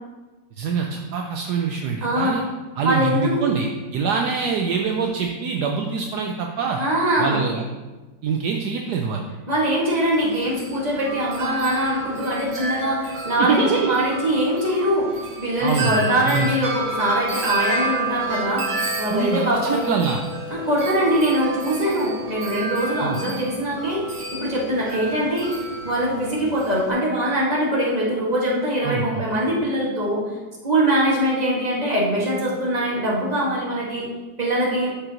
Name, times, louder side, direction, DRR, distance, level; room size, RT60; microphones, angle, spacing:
voice 1, 0.6-2.4 2.8-6.8 7.2-7.6 8.2-9.2 13.4-14.0 15.6-16.5 19.1-20.2 23.0-23.2 28.8-29.3, right 5 dB, 70° right, 2 dB, 1.1 m, -24 dB
voice 2, 2.0-2.3 2.8-3.5 6.8-7.4 9.5-15.1 15.4-18.7 19.0-19.8 20.5-25.5 25.8-30.2 30.6-34.1 34.4-34.9, right 1 dB, 25° right, -5 dB, 1.9 m, -22 dB
Wind chime, 10.0-26.9, right 2 dB, 90° right, 2.2 m, -30 dB
12.5 x 5.1 x 2.9 m, 1.2 s
omnidirectional pair, 1.9 m